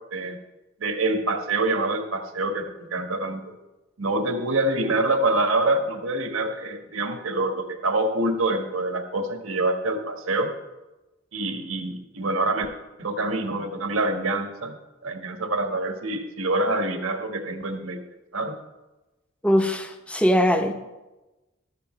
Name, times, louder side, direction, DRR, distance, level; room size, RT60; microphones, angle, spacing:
voice 1, 0.1-0.4 0.8-3.5 4.0-10.5 11.3-12.7 13.0-14.8 15.0-18.0 18.3-18.6, right 2 dB, 90° right, 5 dB, 1.4 m, -26 dB
voice 2, 19.4-20.7, equal, 5° left, 6 dB, 0.8 m, -21 dB
15.0 x 12.5 x 3.2 m, 1.1 s
head